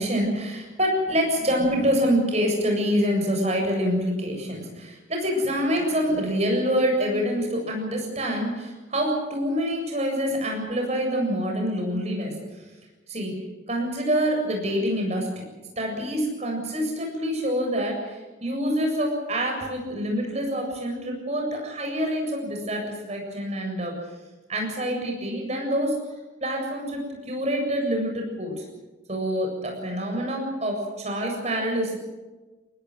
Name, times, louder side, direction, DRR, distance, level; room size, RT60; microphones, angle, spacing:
voice 1, 0.0-12.3 13.1-13.3 13.7-15.4 15.8-23.9 24.5-26.0 26.4-28.6 29.1-32.0, equal, 35° right, 1 dB, 7.6 m, -26 dB
24.5 x 19.0 x 8.0 m, 1.2 s
head